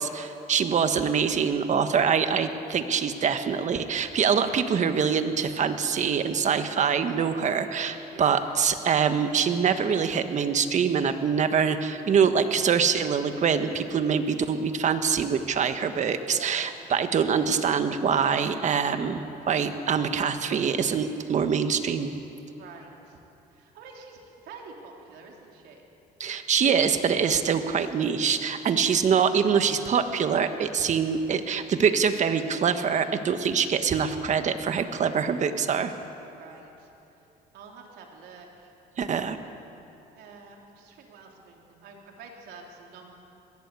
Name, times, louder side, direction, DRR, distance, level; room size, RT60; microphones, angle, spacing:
voice 1, 0.0-22.1 26.2-35.9 39.0-39.4, right 6 dB, 45° right, 8 dB, 1.5 m, -24 dB
voice 2, 8.1-8.4 16.3-16.6 22.6-23.2 23.5-24.2 24.4-25.8 36.3-36.9 37.5-38.7 40.2-43.2, right 4 dB, 75° right, 0 dB, 3.7 m, -47 dB
22.0 x 16.5 x 8.5 m, 2.9 s
cardioid pair, 110°, 17 cm